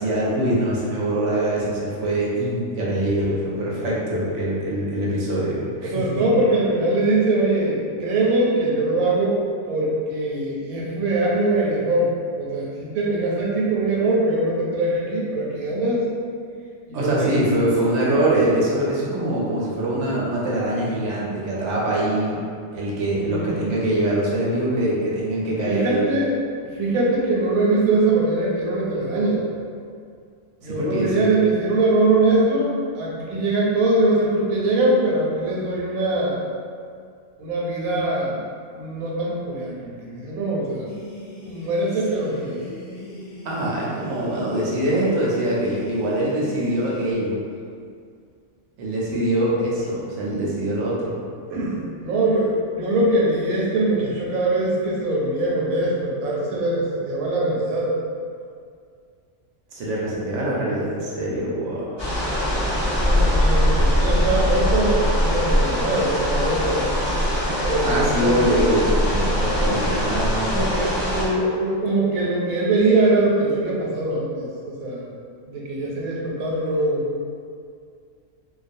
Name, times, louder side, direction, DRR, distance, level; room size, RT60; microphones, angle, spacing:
voice 1, 0.0-6.2 16.9-22.4 22.7-26.0 30.6-31.3 43.4-47.4 48.8-51.2 59.7-62.0 67.8-70.6, right 1 dB, 65° right, -5 dB, 0.8 m, -23 dB
voice 2, 5.8-9.4 9.7-12.1 12.4-16.1 16.9-17.3 23.2-23.6 25.7-26.3 26.7-29.4 30.6-36.4 37.4-38.4 38.7-40.9 41.4-42.6 51.5-57.9 62.9-66.8 67.6-68.4 69.6-69.8 70.4-75.1 75.4-77.0, right 2 dB, 85° right, -4 dB, 1.1 m, -22 dB
sound 1, 40.9-47.1, left 1 dB, 60° left, 0.7 m, -39 dB
sound 2, 62.0-71.3, equal, 25° left, 0.5 m, -22 dB
2.3 x 2.3 x 2.6 m, 2.2 s
omnidirectional pair, 1.5 m